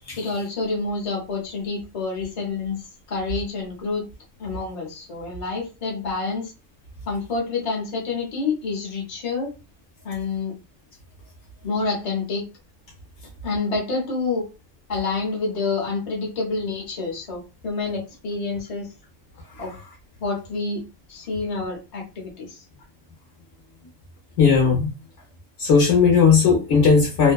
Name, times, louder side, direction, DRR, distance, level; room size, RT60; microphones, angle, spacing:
voice 1, 0.2-2.8 3.1-4.1 4.4-6.5 7.1-9.5 10.0-10.5 11.6-12.5 13.4-14.5 14.9-18.9 19.6-19.8 20.2-20.8 21.1-22.6, left 4 dB, 35° left, 0.7 m, -28 dB
voice 2, 24.4-24.9 25.6-27.3, left 5 dB, 60° left, 1.0 m, -16 dB
2.6 x 2.1 x 2.2 m
omnidirectional pair, 1.5 m